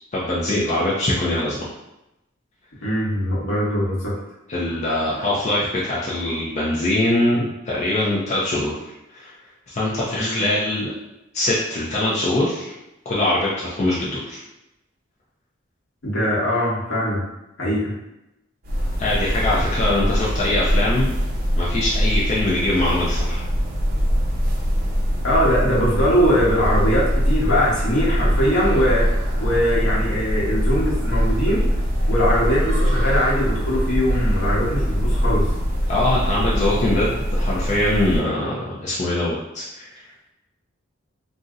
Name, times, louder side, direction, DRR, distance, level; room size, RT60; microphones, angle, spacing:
voice 1, 0.1-1.6 4.5-8.8 9.1-9.3 9.7-10.9 11.3-12.7 13.1-14.4 19.0-21.2 21.6-23.4 35.9-40.0, left 1 dB, 35° left, -6 dB, 0.5 m, -22 dB
voice 2, 2.8-4.1 10.1-10.5 16.0-17.3 17.6-17.9 25.2-29.1 29.4-31.7 32.1-35.5, equal, 70° left, -6 dB, 1.1 m, -21 dB
sound 1, 18.6-38.2, equal, 50° right, 0.7 m, -22 dB
2.6 x 2.1 x 3.6 m, 0.91 s
head